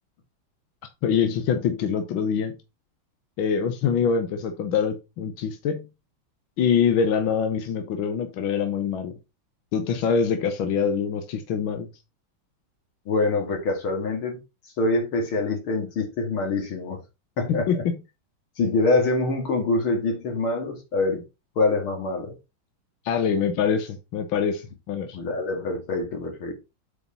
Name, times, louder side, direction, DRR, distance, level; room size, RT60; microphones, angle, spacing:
voice 1, 1.0-2.6 3.4-5.9 6.6-9.2 9.7-11.9 17.5-18.0 23.1-25.2, left 7 dB, 75° left, 1.8 m, -24 dB
voice 2, 13.1-14.4 14.8-17.0 17.4-17.7 18.6-21.2 21.6-22.3 25.1-26.5, left 3 dB, 90° left, 3.0 m, -25 dB
8.1 x 5.1 x 4.2 m
omnidirectional pair, 2.2 m